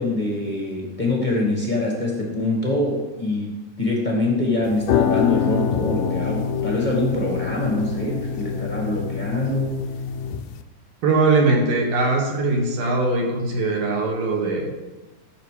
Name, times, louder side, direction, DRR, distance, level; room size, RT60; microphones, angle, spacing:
voice 1, 0.0-3.5 3.8-9.8, left 2 dB, 25° left, -2 dB, 0.9 m, -24 dB
sound 1, 4.6-10.6, left 8 dB, 80° left, 2.0 m, -25 dB
voice 2, 11.0-14.7, right 3 dB, 65° right, -1 dB, 3.4 m, -21 dB
15.0 x 6.9 x 5.0 m, 1.1 s
omnidirectional pair, 4.2 m